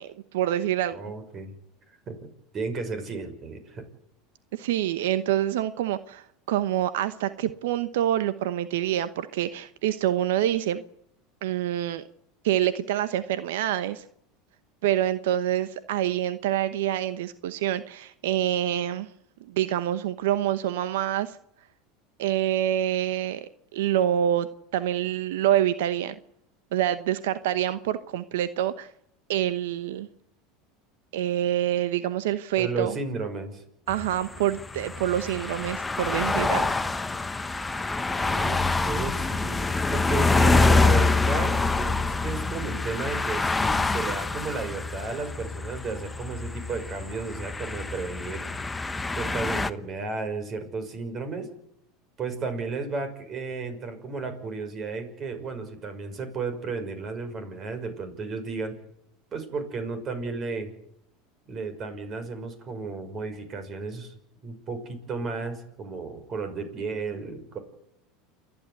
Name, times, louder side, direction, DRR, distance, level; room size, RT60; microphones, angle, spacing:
voice 1, 0.0-1.0 4.5-10.8 11.4-12.0 12.4-14.0 14.8-19.1 19.5-21.4 22.2-26.1 26.7-28.9 29.3-30.1 31.1-32.9 33.9-36.7, right 12 dB, 80° right, 13 dB, 0.9 m, -26 dB
voice 2, 0.9-1.5 1.9-2.3 2.5-3.9 32.6-33.6 37.8-39.6 39.9-48.5 49.1-51.5 52.2-58.8 59.3-60.7 61.5-64.1 64.4-67.6, right 4 dB, 35° right, 9 dB, 5.9 m, -33 dB
sound 1, 33.9-49.7, left 3 dB, 10° left, 1.0 m, -26 dB
29.0 x 11.0 x 9.6 m, 0.78 s
supercardioid pair, 105°, 0 cm